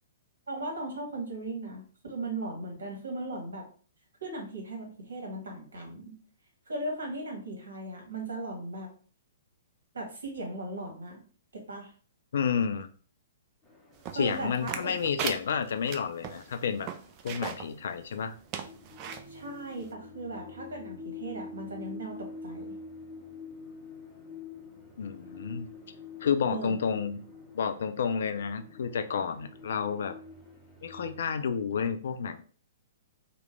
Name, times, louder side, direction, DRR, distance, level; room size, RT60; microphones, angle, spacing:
voice 1, 0.5-3.6 4.2-6.1 6.7-8.9 9.9-11.2 11.5-11.9 14.1-14.9 19.3-22.8 26.5-26.8, right 2 dB, 70° right, 1 dB, 1.2 m, -37 dB
voice 2, 12.3-12.9 14.1-16.9 17.2-18.3 25.0-25.7 26.2-27.2 27.5-30.1 30.8-32.4, left 6 dB, 60° left, 9 dB, 0.4 m, -30 dB
sound 1, 13.6-31.2, left 3 dB, ahead, 0.8 m, -47 dB
sound 2, 14.0-17.7 18.1-18.2 18.5-19.2 19.8-19.9, right 8 dB, 35° right, 0.4 m, -37 dB
3.0 x 2.1 x 3.4 m, 0.41 s
figure-of-eight pair, 115°, 0 cm